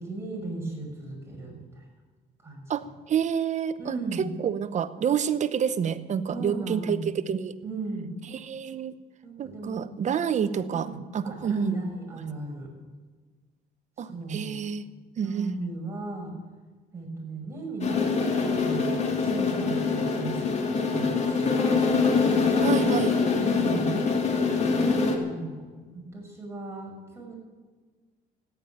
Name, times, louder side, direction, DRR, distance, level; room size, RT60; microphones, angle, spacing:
voice 1, 0.0-1.8 2.4-2.6 3.8-4.3 6.3-7.1 7.6-8.1 9.2-9.8 10.2-11.0 11.2-12.7 14.0-14.6 15.2-16.3 16.9-21.6 23.2-24.0 25.1-25.7 25.9-27.3, right 3 dB, 15° right, -1 dB, 6.3 m, -36 dB
voice 2, 2.7-7.5 8.2-9.0 9.4-11.8 14.0-14.8 15.2-15.5 22.6-23.2, right 8 dB, 45° right, 13 dB, 0.9 m, -28 dB
sound 1, 17.8-25.2, left 4 dB, 40° left, 2.7 m, -24 dB
14.5 x 10.5 x 9.2 m, 1.4 s
cardioid pair, 110°, 17 cm